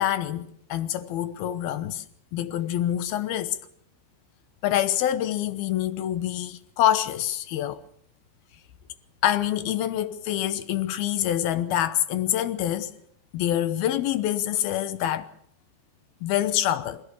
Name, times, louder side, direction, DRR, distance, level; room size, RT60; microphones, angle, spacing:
voice 1, 0.0-2.0 2.3-3.6 4.6-7.8 9.2-12.9 13.3-15.3 16.2-17.0, left 12 dB, 70° left, 2.7 m, -26 dB
25.5 x 17.0 x 7.0 m
omnidirectional pair, 4.8 m